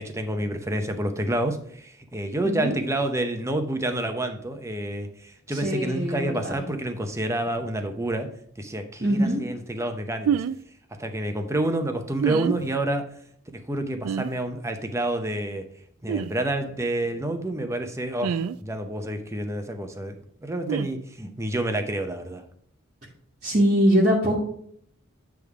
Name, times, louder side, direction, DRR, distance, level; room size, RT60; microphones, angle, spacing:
voice 1, 0.0-8.3 8.6-10.4 11.0-13.1 13.7-15.6 16.0-20.1 20.4-22.4, right 1 dB, 15° right, 6 dB, 0.7 m, -28 dB
voice 2, 2.4-2.7 5.5-6.6 9.0-9.4 23.4-24.4, equal, 40° right, -5 dB, 1.3 m, -22 dB
sound 1, 10.2-10.5 12.2-12.6 14.0-14.3 16.1-16.3 18.2-18.6 20.7-20.9, right 8 dB, 85° right, 0.3 m, -26 dB
8.3 x 3.5 x 4.7 m, 0.66 s
head